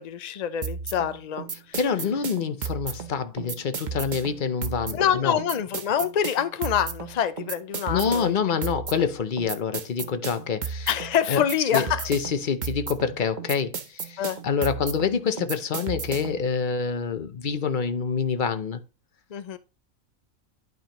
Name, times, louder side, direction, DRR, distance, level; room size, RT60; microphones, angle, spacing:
voice 1, 0.0-1.8 4.9-8.4 10.9-12.1 14.2-14.4 19.3-19.6, left 9 dB, 80° left, 0.3 m, -26 dB
sound 1, 0.6-16.5, right 6 dB, 40° right, 0.8 m, -34 dB
voice 2, 1.7-5.4 7.9-10.9 11.3-11.4 11.7-18.8, left 6 dB, 45° left, 0.7 m, -27 dB
11.5 x 5.2 x 3.0 m
omnidirectional pair, 1.4 m